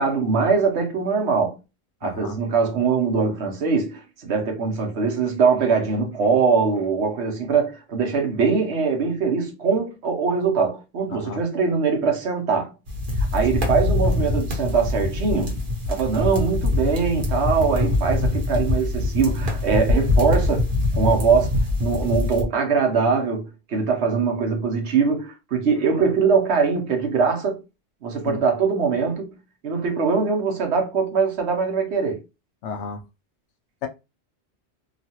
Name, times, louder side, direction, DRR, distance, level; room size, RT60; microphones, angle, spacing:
voice 1, 0.0-1.6 2.0-12.7 13.3-15.6 15.9-20.7 21.0-27.6 28.0-29.4 29.6-32.2, right 5 dB, 70° right, 1.1 m, -22 dB
voice 2, 2.0-2.4 11.1-11.4 13.6-13.8 17.6-17.9 28.2-28.4 32.6-33.0 33.8-33.9, left 5 dB, 85° left, 0.9 m, -33 dB
sound 1, 12.9-22.4, left 2 dB, 50° right, 1.0 m, -23 dB
3.0 x 2.3 x 2.8 m
omnidirectional pair, 1.2 m